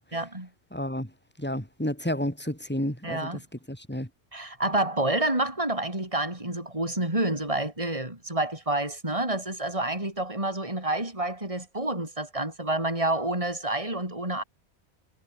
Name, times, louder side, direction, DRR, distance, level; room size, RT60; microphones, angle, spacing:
voice 1, 0.1-0.5 3.0-3.4 4.3-14.4, right 2 dB, 25° right, 5.3 m, -28 dB
voice 2, 0.7-1.1 1.4-3.3 3.7-4.1, left 1 dB, 10° left, 5.3 m, -31 dB
omnidirectional pair, 1.2 m